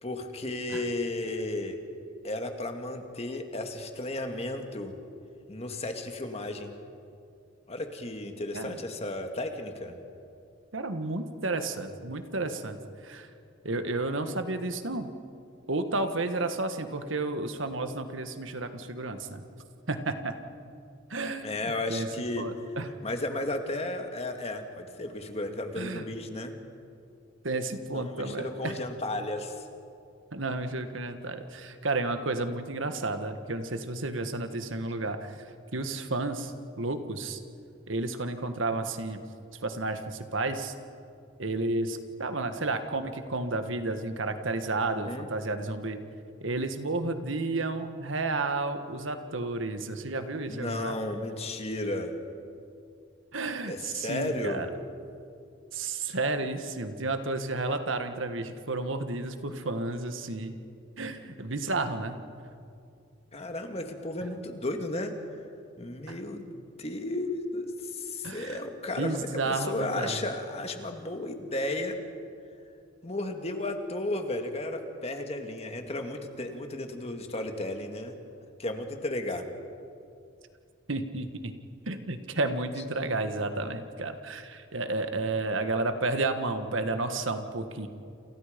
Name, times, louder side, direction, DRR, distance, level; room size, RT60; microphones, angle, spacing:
voice 1, 0.0-1.8 2.2-4.9 5.5-6.7 7.7-10.0 21.4-22.5 23.0-26.6 27.9-29.6 44.9-45.3 50.5-52.1 53.6-54.7 63.3-65.1 65.8-72.0 73.0-78.2 78.6-79.5, left 2 dB, 30° left, 5 dB, 2.1 m, -34 dB
voice 2, 10.7-12.8 13.0-13.3 13.6-15.1 15.7-19.4 19.9-20.4 21.1-21.6 21.9-22.1 22.4-22.9 25.8-26.1 27.4-28.7 30.3-35.3 35.7-36.5 36.8-37.4 37.9-39.2 39.6-40.7 41.4-46.0 46.4-51.0 53.3-54.7 55.7-60.6 61.0-62.2 66.1-66.2 68.2-68.6 69.0-70.2 80.9-81.5 81.9-87.9, right 2 dB, 75° right, 8 dB, 1.6 m, -31 dB
29.0 x 28.5 x 5.3 m, 2.5 s
head